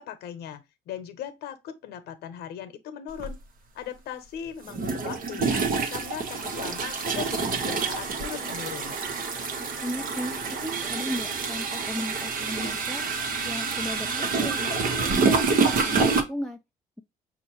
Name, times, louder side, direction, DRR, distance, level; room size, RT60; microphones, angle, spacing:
voice 1, 0.0-3.4 3.7-5.6 5.9-9.0, left 9 dB, 75° left, 0.9 m, -38 dB
sound 1, 3.2-3.3 4.7-16.2, right 4 dB, 60° right, 1.0 m, -27 dB
voice 2, 9.6-13.0 13.4-16.6, left 1 dB, ahead, 0.4 m, -36 dB
5.8 x 2.6 x 3.0 m
cardioid pair, 110°, 17 cm